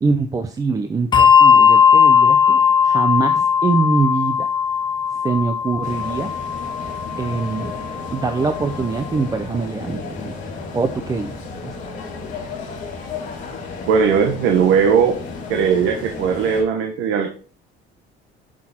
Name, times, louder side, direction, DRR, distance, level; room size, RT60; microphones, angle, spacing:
voice 1, 0.0-4.5 5.2-6.3 7.2-7.7 8.1-10.4 10.7-11.4 11.6-11.7, right 4 dB, 15° right, 9 dB, 0.6 m, -23 dB
Bell, 1.1-8.0, left 7 dB, 20° left, 0.7 m, -16 dB
sound 1, 5.8-16.6, left 4 dB, 40° left, 3.3 m, -33 dB
voice 2, 13.9-15.2 15.5-17.3, right 6 dB, 75° right, 4 dB, 1.5 m, -18 dB
10.5 x 6.3 x 4.4 m, 0.41 s
cardioid pair, 170°, 21 cm